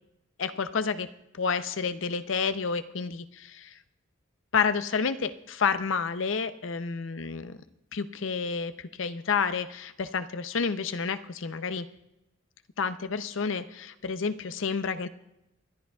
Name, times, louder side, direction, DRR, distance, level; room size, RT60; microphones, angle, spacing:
voice 1, 0.4-1.1 1.3-3.8 4.5-7.6 7.9-11.9 12.8-15.1, left 5 dB, 75° left, 11 dB, 0.6 m, -30 dB
24.5 x 11.5 x 2.3 m, 0.87 s
head